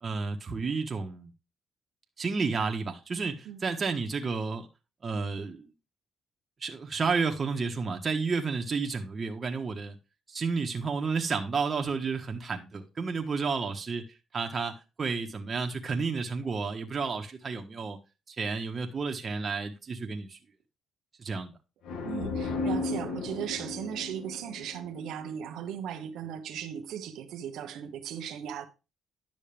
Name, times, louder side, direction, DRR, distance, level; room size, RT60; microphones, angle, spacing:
voice 1, 0.0-1.3 2.2-4.7 5.0-5.7 6.6-10.0 10.3-14.0 14.3-14.7 15.0-18.0 18.3-20.4 21.2-21.5, right 4 dB, 40° right, 1.3 m, -31 dB
sound 1, 21.8-25.5, left 3 dB, 80° left, 1.5 m, -34 dB
voice 2, 22.0-28.7, right 9 dB, 85° right, 1.0 m, -37 dB
10.5 x 6.4 x 3.4 m
cardioid pair, 90°, 0 cm